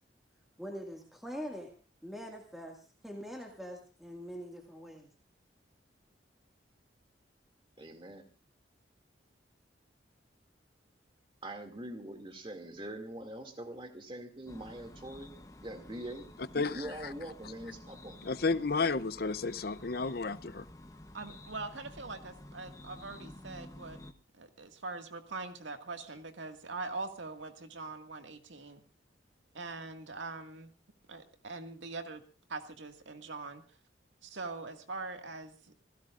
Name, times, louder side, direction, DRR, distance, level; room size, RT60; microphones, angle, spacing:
voice 1, 0.6-1.7 2.0-5.1, equal, ahead, 2.0 m, -43 dB
voice 2, 7.8-8.2 11.4-15.3 15.6-16.3 16.5-18.2, right 1 dB, 30° right, 2.4 m, -43 dB
sound 1, 14.5-24.1, left 1 dB, 20° left, 1.0 m, -51 dB
voice 3, 16.5-16.9 18.2-20.7, left 4 dB, 55° left, 0.7 m, -32 dB
voice 4, 21.1-24.0 24.4-28.8 29.5-30.7 31.1-32.2 32.5-33.6 34.2-35.6, right 3 dB, 90° right, 2.0 m, -42 dB
29.5 x 16.0 x 2.5 m
head